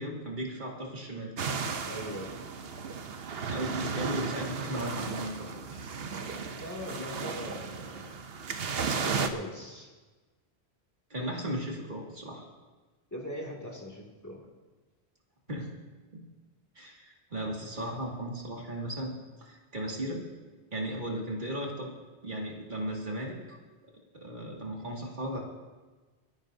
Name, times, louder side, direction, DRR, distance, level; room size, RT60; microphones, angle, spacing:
voice 1, 0.0-1.3 3.5-5.8 11.1-12.5 15.5-15.8 16.1-16.2 16.8-19.1 19.4-20.2 20.7-21.9 22.2-23.6 24.1-25.4, right 1 dB, 50° right, -2 dB, 2.4 m, -36 dB
sound 1, 1.4-9.3, right 5 dB, 65° right, 1.0 m, -35 dB
voice 2, 1.9-2.3 6.5-8.2 9.1-9.9 13.1-14.5, equal, 15° left, -2 dB, 2.3 m, -41 dB
28.5 x 10.5 x 2.7 m, 1.3 s
omnidirectional pair, 1.1 m